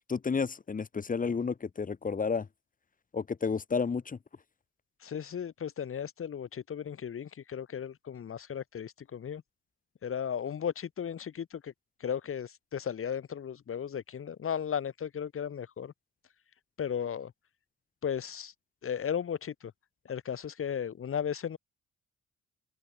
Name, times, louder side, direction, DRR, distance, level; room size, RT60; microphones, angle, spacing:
voice 1, 0.1-2.5 3.1-4.2, left 5 dB, 30° left, 3.3 m, -31 dB
voice 2, 5.0-9.4 10.0-11.7 12.0-15.9 16.8-17.3 18.0-18.5 18.8-19.7 20.1-21.6, left 8 dB, 45° left, 5.2 m, -35 dB
wide cardioid pair, 165°, 29 cm